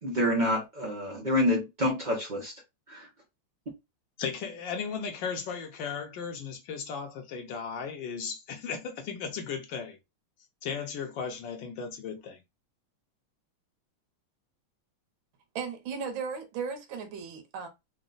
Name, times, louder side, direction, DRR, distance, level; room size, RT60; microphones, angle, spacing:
voice 1, 0.0-2.5 2.9-3.1, left 1 dB, 85° right, 0.4 m, -27 dB
voice 2, 4.2-10.0 10.6-12.4, left 6 dB, 70° left, 1.3 m, -36 dB
voice 3, 15.5-17.7, right 6 dB, 70° right, 1.7 m, -36 dB
4.0 x 2.2 x 3.8 m
omnidirectional pair, 2.3 m